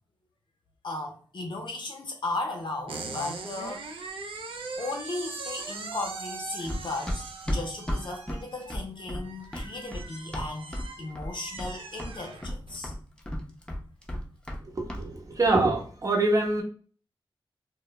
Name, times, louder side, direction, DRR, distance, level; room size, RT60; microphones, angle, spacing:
voice 1, 0.8-4.1 4.8-12.9, left 2 dB, 60° left, 0.5 m, -36 dB
sound 1, 2.9-12.8, right 4 dB, 75° right, 0.4 m, -41 dB
Run, 6.7-10.9 11.2-11.7 12.0-14.6 14.9-15.1, equal, 10° left, 0.6 m, -33 dB
voice 2, 14.6-16.6, right 2 dB, 35° right, 0.8 m, -25 dB
2.1 x 2.0 x 2.9 m
cardioid pair, 50°, 9 cm